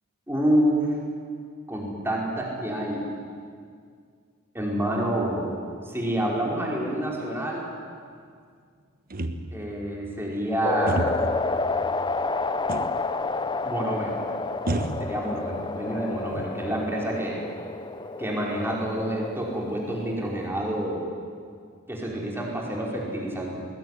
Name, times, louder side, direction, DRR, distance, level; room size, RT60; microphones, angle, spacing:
voice 1, 0.3-0.9 1.7-3.0 4.5-5.5 5.8-7.7 9.5-11.1 13.6-14.2 15.0-17.4 18.2-21.1 21.9-23.5, right 1 dB, 10° right, -3 dB, 5.0 m, -28 dB
sound 1, 9.1-9.8 10.9-11.4 12.7-13.1 13.4-13.5 14.7-15.7 16.1-16.9, right 1 dB, 45° right, 1.3 m, -31 dB
sound 2, 10.6-20.5, left 3 dB, 20° left, 0.8 m, -30 dB
20.5 x 20.0 x 9.9 m, 2.1 s
head